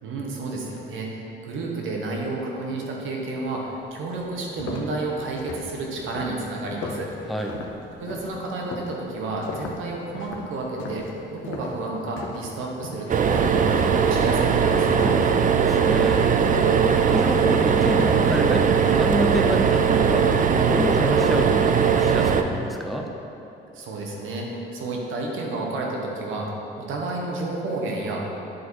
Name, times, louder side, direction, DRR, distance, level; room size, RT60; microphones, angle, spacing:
voice 1, 0.0-7.1 8.0-15.1 23.7-28.2, right 2 dB, 85° right, -1 dB, 1.3 m, -31 dB
sound 1, 3.6-3.7 4.1-12.5 12.8-13.2 13.6-18.3, left 3 dB, 80° left, 0.9 m, -37 dB
voice 2, 7.3-7.6 15.3-23.1, equal, ahead, 2 dB, 0.7 m, -27 dB
sound 2, 13.1-22.4, right 6 dB, 40° right, 0.5 m, -20 dB
9.3 x 4.2 x 4.6 m, 2.9 s
cardioid pair, 90°, 20 cm